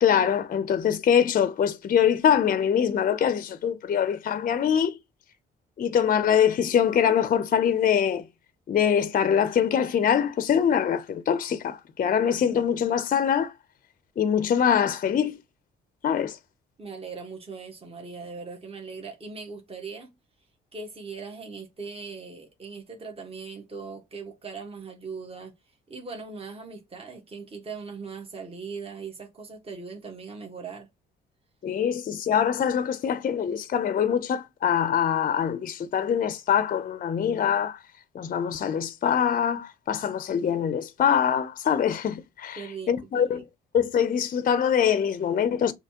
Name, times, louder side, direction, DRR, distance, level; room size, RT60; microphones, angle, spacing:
voice 1, 0.0-4.9 5.8-8.2 8.7-13.5 14.2-15.4 16.0-16.4 31.6-37.8 38.1-43.4 43.7-45.7, left 8 dB, 45° left, 0.5 m, -24 dB
voice 2, 16.8-20.1 20.7-25.5 25.9-30.9 42.5-43.4, right 4 dB, 30° right, 1.4 m, -39 dB
6.6 x 2.8 x 2.8 m
cardioid pair, 90°, 20 cm